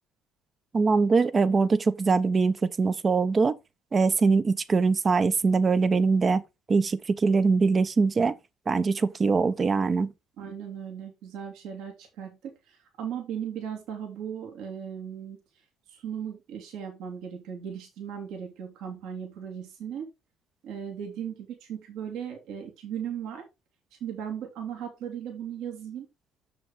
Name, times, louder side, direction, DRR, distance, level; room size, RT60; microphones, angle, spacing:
voice 1, 0.7-3.6 3.9-6.4 6.7-8.4 8.7-10.1, right 4 dB, 35° right, 0.9 m, -23 dB
voice 2, 10.4-15.4 15.9-20.1 20.6-23.4 23.9-26.1, right 8 dB, 75° right, 2.6 m, -37 dB
7.0 x 6.7 x 3.7 m
supercardioid pair, 70°, 0 cm